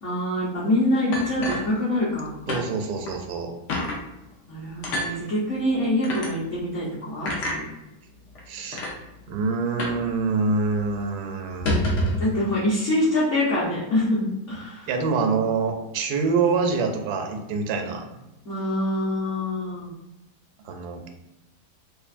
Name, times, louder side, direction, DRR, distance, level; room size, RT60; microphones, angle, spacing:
voice 1, 0.0-2.3 4.5-7.7 12.2-14.9 18.4-19.9, left 1 dB, 50° left, -9 dB, 1.1 m, -25 dB
sound 1, 1.1-2.2 2.5-2.7 3.1-3.2 3.7-4.0 4.8-5.1 6.0-6.3 7.3-7.6 8.4-8.5 8.7-8.9 9.8-10.1 10.3-10.4 10.8-10.9 11.5-12.3, left 1 dB, 80° left, 1.4 m, -27 dB
voice 2, 2.5-3.5 8.5-8.9 9.3-11.7 14.9-18.1 20.6-21.1, right 4 dB, 75° right, 4 dB, 1.1 m, -25 dB
5.0 x 2.5 x 2.5 m, 0.95 s
omnidirectional pair, 1.8 m